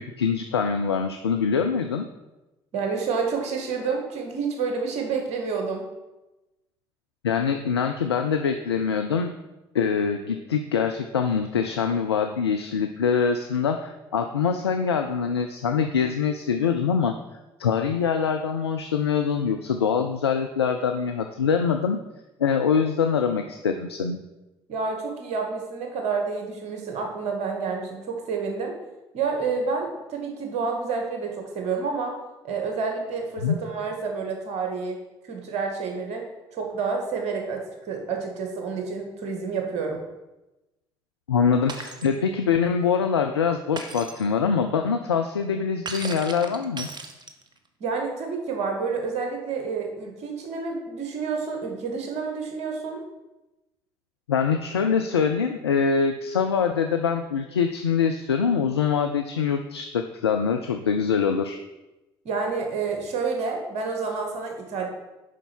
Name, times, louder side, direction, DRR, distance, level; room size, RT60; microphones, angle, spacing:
voice 1, 0.0-2.1 7.2-9.3 9.7-17.1 17.6-22.0 22.4-24.2 33.4-33.6 41.3-46.9 54.3-61.6, left 6 dB, 85° left, 5 dB, 0.4 m, -24 dB
voice 2, 2.7-5.9 24.7-28.7 29.1-32.1 32.4-35.0 35.3-36.2 36.5-40.0 47.8-53.0 62.3-64.9, right 5 dB, 60° right, 2 dB, 1.8 m, -29 dB
Shatter, 41.7-42.1 43.8-44.2 45.9-47.6, right 4 dB, 35° right, 1.0 m, -36 dB
7.3 x 5.4 x 6.0 m, 1.0 s
figure-of-eight pair, 50°, 13 cm